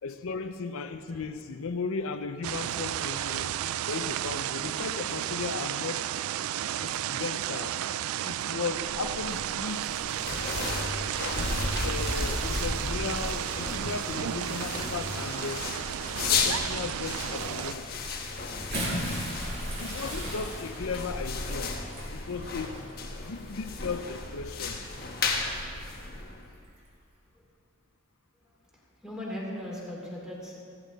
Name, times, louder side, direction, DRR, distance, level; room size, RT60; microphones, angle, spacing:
voice 1, 0.0-3.6 3.9-6.1 6.8-7.8 8.2-9.9 11.3-15.8 16.3-17.9 19.8-21.8 22.1-22.8 23.1-24.9, left 4 dB, 70° left, 8 dB, 0.5 m, -36 dB
sound 1, 2.4-17.7, right 11 dB, 75° right, 0.3 m, -33 dB
sound 2, 8.7-26.6, left 3 dB, 45° left, 1.3 m, -34 dB
Bathtub (filling or washing) / Splash splatter, 18.5-24.2 25.1-25.2 26.7-26.8, equal, 45° right, 3.7 m, -38 dB
voice 2, 28.4-30.6, left 1 dB, 5° right, -4 dB, 2.8 m, -39 dB
15.5 x 14.5 x 4.0 m, 2.5 s
head